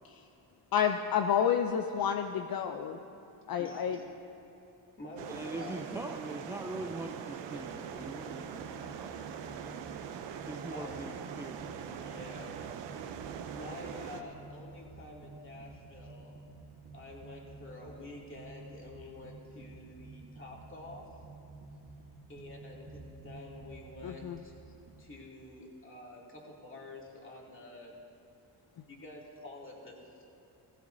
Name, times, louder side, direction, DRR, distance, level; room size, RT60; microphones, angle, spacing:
voice 1, 0.7-3.0 3.5-4.0 24.0-24.4, left 8 dB, 60° left, 6 dB, 0.6 m, -29 dB
voice 2, 3.6-4.1 5.0-5.9 10.7-11.0 12.0-12.7 13.5-16.4 16.9-21.2 22.3-24.6 25.0-28.0 28.9-30.3, left 2 dB, 30° left, -3 dB, 2.6 m, -48 dB
sound 1, 5.2-14.2, right 8 dB, 85° right, 0.7 m, -42 dB
voice 3, 5.3-9.1 10.5-12.0, right 1 dB, 5° right, 3 dB, 0.5 m, -42 dB
sound 2, 7.4-25.0, right 3 dB, 70° right, 3.1 m, -51 dB
15.5 x 15.5 x 2.7 m, 2.8 s
cardioid pair, 70°, 41 cm